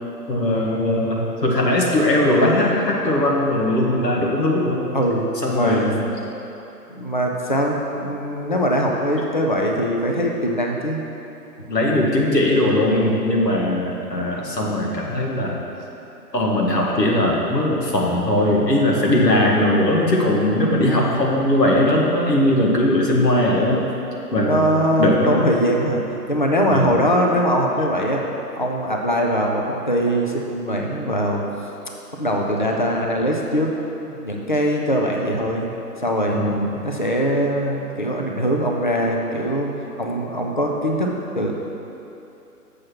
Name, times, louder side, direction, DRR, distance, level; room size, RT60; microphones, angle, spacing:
voice 1, 0.3-4.8 5.4-6.0 11.7-15.6 16.3-23.8 24.3-24.6 25.0-25.5 26.7-26.9 36.3-36.6, left 1 dB, 85° left, -3 dB, 1.8 m, -19 dB
voice 2, 4.9-5.9 6.9-11.0 20.8-21.1 24.4-26.0 26.3-28.2 28.6-31.4 32.2-33.7 34.1-35.7 36.0-36.4 36.8-39.7 40.0-41.1 41.4-41.5, equal, 35° left, 0 dB, 0.4 m, -22 dB
7.2 x 6.4 x 4.5 m, 2.9 s
figure-of-eight pair, 145°, 48 cm